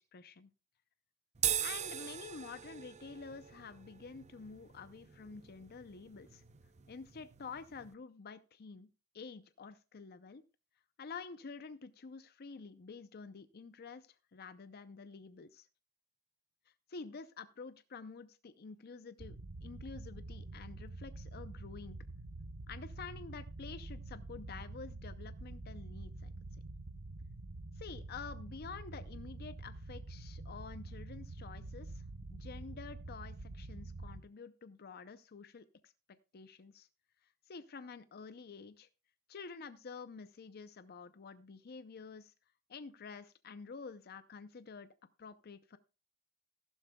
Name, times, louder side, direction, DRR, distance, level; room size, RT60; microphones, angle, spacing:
voice 1, 0.1-0.5 1.6-6.4 6.9-8.9 9.1-10.4 11.0-15.7 16.7-22.0 22.7-26.3 27.8-35.9 36.3-36.9 37.2-38.9 39.3-42.3 42.7-44.9 45.2-45.8, left 5 dB, 45° left, 12 dB, 0.5 m, -49 dB
sound 1, 1.3-7.9, right 10 dB, 30° right, 0.6 m, -41 dB
sound 2, 19.2-34.2, right 2 dB, 70° right, 0.9 m, -47 dB
14.0 x 12.0 x 2.2 m, 0.30 s
head